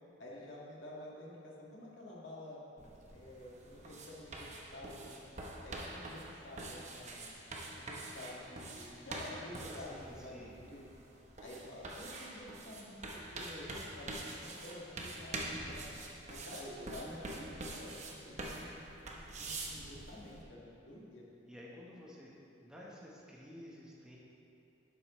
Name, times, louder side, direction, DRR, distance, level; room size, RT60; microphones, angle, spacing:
voice 1, 0.2-2.6 3.1-5.2 5.6-7.3 7.8-10.8 11.4-15.9 16.3-18.8 19.4-21.2, left 1 dB, 80° left, -4 dB, 1.8 m, -50 dB
sound 1, 2.8-20.4, right 2 dB, 40° right, 1.0 m, -45 dB
voice 2, 9.7-10.6 21.4-22.3 22.6-24.2, left 1 dB, 5° right, -5 dB, 1.0 m, -52 dB
11.0 x 7.8 x 3.1 m, 2.7 s
head